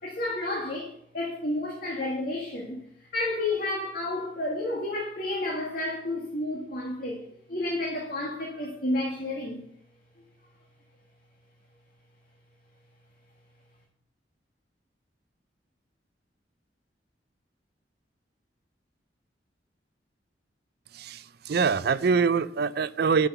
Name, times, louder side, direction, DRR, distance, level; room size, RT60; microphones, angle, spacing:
voice 1, 0.0-2.8 3.1-9.6, left 2 dB, 55° left, -2 dB, 2.0 m, -31 dB
voice 2, 20.9-23.3, right 5 dB, 60° right, 15 dB, 0.5 m, -24 dB
10.5 x 6.1 x 6.9 m, 0.70 s
head